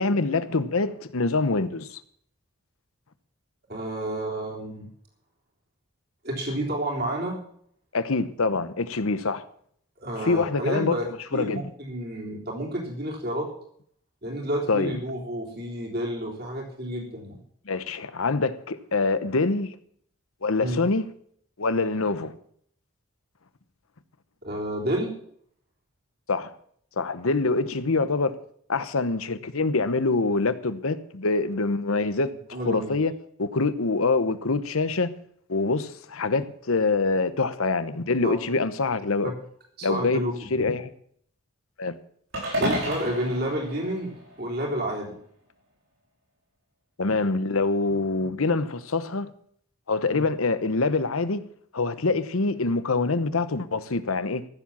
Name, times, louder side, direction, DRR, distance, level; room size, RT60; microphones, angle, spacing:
voice 1, 0.0-2.0 7.9-9.4 10.2-11.0 11.3-11.6 14.7-14.9 17.7-19.7 20.4-21.1 21.6-22.3 26.3-26.5 27.0-28.4 28.7-33.1 33.4-35.2 35.5-39.3 39.8-40.2 40.5-40.9 41.8-42.0 47.0-49.3 49.9-51.5 51.7-54.5, left 3 dB, 90° left, 1.0 m, -25 dB
voice 2, 3.7-4.9 6.2-7.4 10.0-11.0 11.3-13.5 14.2-17.4 20.6-20.8 24.4-25.2 32.5-32.9 38.2-38.4 39.2-39.3 39.8-40.3 42.6-45.2 50.1-50.2, right 1 dB, 50° right, 3.7 m, -30 dB
sound 1, 42.3-44.7, equal, 70° right, 7.2 m, -31 dB
14.5 x 7.5 x 7.4 m
head